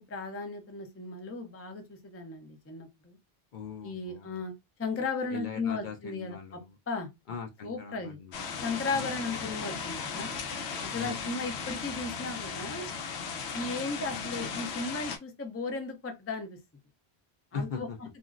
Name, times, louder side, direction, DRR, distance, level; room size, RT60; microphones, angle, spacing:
voice 1, 0.1-3.2 3.8-4.5 4.8-6.4 6.9-7.1 7.6-8.2 8.6-10.4 10.8-12.9 13.5-16.6 17.5-17.9, left 3 dB, 20° left, 0.4 m, -35 dB
voice 2, 3.5-4.4 5.3-6.8 7.3-8.4 8.9-9.2 10.9-11.2 17.5-18.0, left 5 dB, 55° left, 0.6 m, -40 dB
sound 1, 8.3-15.2, left 5 dB, 90° left, 0.9 m, -36 dB
2.9 x 2.5 x 2.4 m
omnidirectional pair, 1.1 m